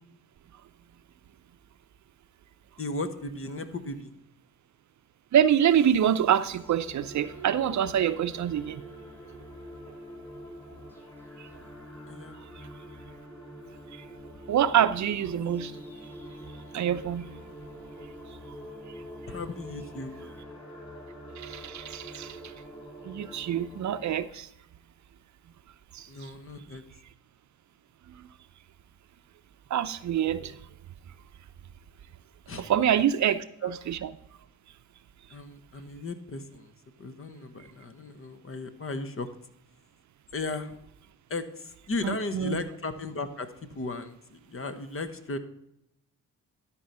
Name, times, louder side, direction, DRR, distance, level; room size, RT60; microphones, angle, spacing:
voice 1, 2.8-4.1 12.1-12.4 19.3-20.1 26.1-26.8 32.5-32.7 33.6-33.7 35.3-36.7 37.0-39.3 40.3-40.8 41.3-45.4, left 3 dB, 40° left, 10 dB, 1.2 m, -36 dB
voice 2, 5.3-8.8 14.5-15.7 16.7-17.3 21.4-22.4 23.0-24.5 25.9-26.1 29.7-30.6 32.6-34.2 42.0-42.6, right 9 dB, 55° right, 13 dB, 0.7 m, -26 dB
sound 1, 6.4-24.2, equal, 5° left, 3.9 m, -45 dB
12.5 x 4.7 x 5.5 m, 0.78 s
cardioid pair, 70°, 34 cm